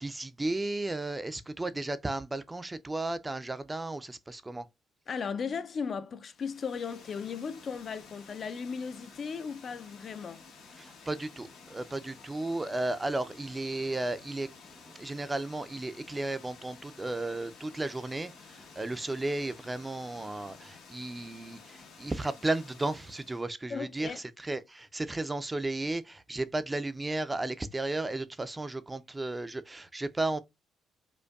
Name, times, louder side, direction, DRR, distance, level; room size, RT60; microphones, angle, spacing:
voice 1, 0.0-4.6 10.8-14.5 14.9-30.4, right 2 dB, 20° right, 0.4 m, -34 dB
voice 2, 5.1-10.4 23.7-24.2, left 6 dB, 50° left, 0.4 m, -36 dB
Water, 6.3-23.5, left 4 dB, 90° left, 1.1 m, -53 dB
5.1 x 2.2 x 2.2 m
cardioid pair, 90°, 0 cm